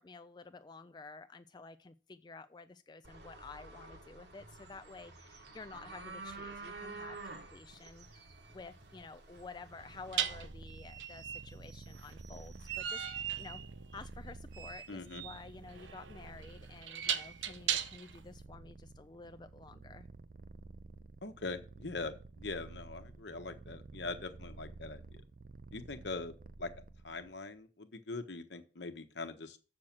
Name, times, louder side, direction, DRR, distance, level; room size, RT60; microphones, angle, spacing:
voice 1, 0.0-13.6 13.9-20.1, left 3 dB, 25° left, 11 dB, 0.3 m, -51 dB
sound 1, 3.0-10.5, right 3 dB, 65° right, 1.5 m, -50 dB
sound 2, 7.7-7.9 10.1-18.2, right 9 dB, 85° right, 0.8 m, -38 dB
Purr, 9.6-27.4, right 3 dB, 45° right, 0.4 m, -52 dB
voice 2, 14.9-15.2 21.2-25.2 25.7-26.7 27.0-29.6, left 3 dB, 70° left, 7 dB, 1.1 m, -42 dB
7.4 x 6.2 x 6.0 m, 0.36 s
head